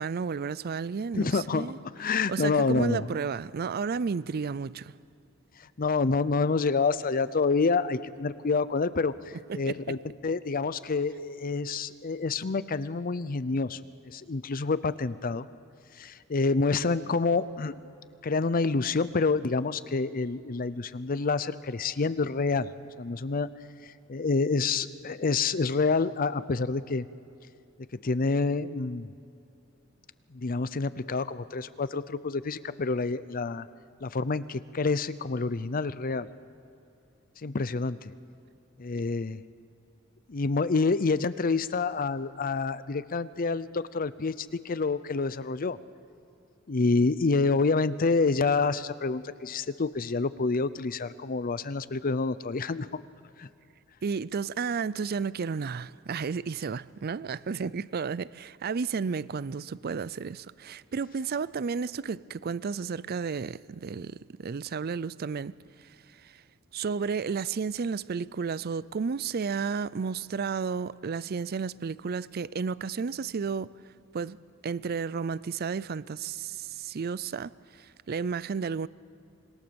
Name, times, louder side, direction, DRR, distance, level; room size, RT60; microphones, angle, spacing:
voice 1, 0.0-1.8 2.1-4.9 9.5-10.0 54.0-65.9 66.2-66.4 66.7-73.7 74.1-74.4 74.6-78.9, right 5 dB, 50° right, 0.4 m, -32 dB
voice 2, 1.1-1.7 2.0-3.1 5.8-13.8 14.1-15.5 16.0-17.8 18.2-22.7 23.0-23.5 24.1-27.1 28.0-29.1 30.3-33.7 34.0-36.3 37.4-38.1 38.8-39.4 40.3-45.8 46.7-52.9 53.4-53.5, left 4 dB, 45° left, 0.6 m, -28 dB
26.0 x 22.0 x 7.0 m
head